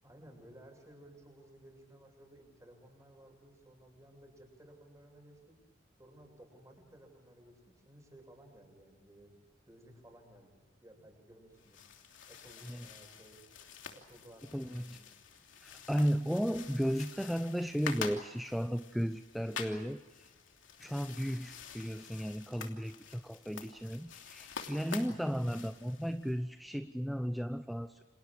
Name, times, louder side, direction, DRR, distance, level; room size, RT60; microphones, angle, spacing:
voice 1, 0.0-5.6 6.0-9.3 9.7-11.8 12.3-13.4 13.9-15.1 15.7-15.9, right 1 dB, 15° right, 2 dB, 7.6 m, -57 dB
sound 1, 11.5-26.3, left 6 dB, 90° left, 3.1 m, -48 dB
voice 2, 14.5-15.0 15.6-20.3 20.8-28.0, equal, ahead, 9 dB, 0.7 m, -35 dB
29.5 x 27.5 x 4.9 m, 1.2 s
head